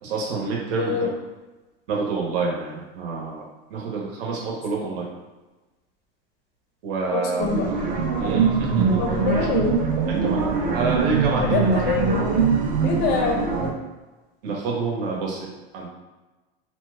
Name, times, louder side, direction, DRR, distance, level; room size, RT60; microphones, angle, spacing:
voice 1, 0.0-1.1 1.9-3.4 3.7-5.1 6.8-7.6 8.2-9.0 10.1-10.4 10.7-11.6 12.7-12.8 14.4-15.9, right 4 dB, 70° right, -2 dB, 0.9 m, -28 dB
voice 2, 0.8-1.1 7.1-7.7 9.0-9.8 11.3-12.2 12.8-13.4, left 6 dB, 35° left, 2 dB, 0.5 m, -25 dB
sound 1, 7.4-13.7, right 5 dB, 30° right, 0.4 m, -22 dB
2.9 x 2.1 x 3.3 m, 1.2 s
supercardioid pair, 140°, 30 cm